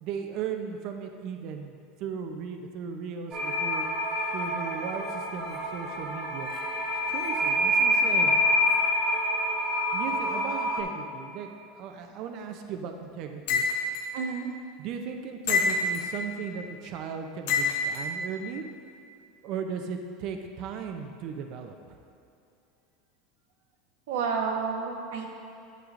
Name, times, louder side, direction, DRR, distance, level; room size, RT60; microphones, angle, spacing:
voice 1, 0.0-3.9 4.3-6.5 7.1-8.4 9.9-11.5 11.7-13.6 14.8-18.6 19.4-22.0, right 6 dB, 45° right, 5 dB, 0.6 m, -37 dB
sound 1, 3.3-10.8, equal, 25° right, 1.0 m, -27 dB
sound 2, 13.5-14.1 15.5-16.1 17.5-18.1, left 4 dB, 70° left, 1.1 m, -26 dB
voice 2, 14.1-14.5 24.1-25.4, right 5 dB, 80° right, 2 dB, 1.1 m, -30 dB
9.8 x 7.8 x 2.6 m, 2.7 s
supercardioid pair, 160°, 0 cm